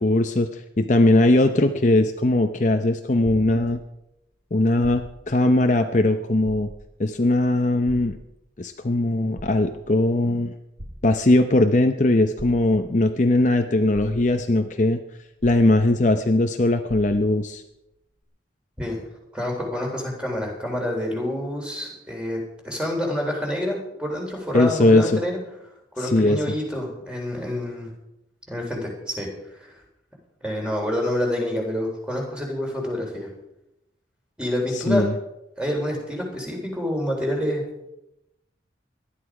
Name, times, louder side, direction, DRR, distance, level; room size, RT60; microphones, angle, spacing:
voice 1, 0.0-3.8 4.5-6.7 7.0-8.2 8.6-10.5 11.0-15.0 15.4-17.6 24.5-25.2 26.0-26.4 34.7-35.1, left 2 dB, 40° left, 6 dB, 0.7 m, -20 dB
sound 1, 3.2-4.1 4.7-5.4 5.8-5.9 6.4-7.1 7.9-8.7 9.2-10.0 10.8-11.5 12.4-13.1 13.6-13.7 13.9-14.6 15.4-16.2 16.5-16.6 16.9-17.5 18.2-18.3, equal, 50° right, 3.1 m, -41 dB
voice 2, 19.3-22.4 22.6-25.4 25.9-27.9 28.5-29.3 29.6-29.7 30.4-33.3 34.4-35.0 35.6-37.6, left 1 dB, 5° right, 0 dB, 3.8 m, -27 dB
18.5 x 12.0 x 4.9 m, 0.88 s
head